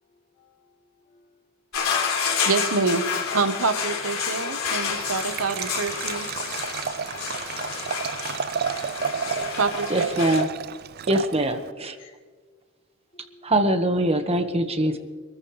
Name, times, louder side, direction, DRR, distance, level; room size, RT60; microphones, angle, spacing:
voice 1, 0.1-1.4 12.0-12.2 13.1-13.5, left 3 dB, 40° left, -6 dB, 4.1 m, -58 dB
sound 1, 1.7-10.4, left 6 dB, 80° left, 3.6 m, -29 dB
voice 2, 2.4-3.0 3.3-6.3 9.5-10.3, right 4 dB, 80° right, 10 dB, 1.1 m, -26 dB
Liquid, 4.9-11.7, right 7 dB, 50° right, 0.4 m, -31 dB
voice 3, 9.9-10.5 11.1-12.0 13.4-15.0, right 1 dB, 30° right, 7 dB, 1.3 m, -23 dB
26.0 x 14.0 x 3.2 m, 1.5 s
head